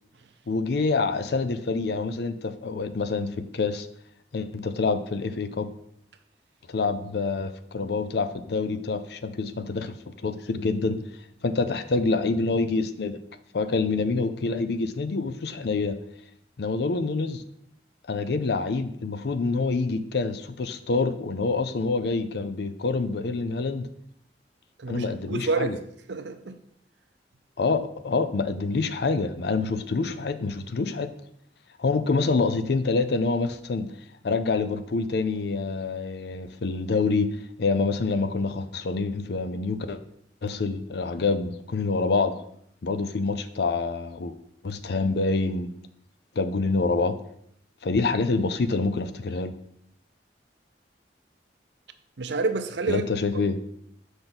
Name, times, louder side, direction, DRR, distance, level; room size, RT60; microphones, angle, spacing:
voice 1, 0.5-3.9 4.3-5.7 6.7-11.0 11.4-13.2 13.5-16.0 16.6-17.4 18.1-23.9 24.9-25.8 27.6-31.1 31.8-33.9 34.2-37.3 37.6-40.0 40.4-42.4 42.8-44.4 44.6-45.7 46.4-47.2 47.8-49.5 52.9-53.6, left 3 dB, 65° left, 11 dB, 0.5 m, -26 dB
voice 2, 24.8-25.8 26.1-26.6 52.2-53.0 53.3-53.6, right 3 dB, 75° right, 9 dB, 0.6 m, -29 dB
6.1 x 5.2 x 3.9 m, 0.70 s
head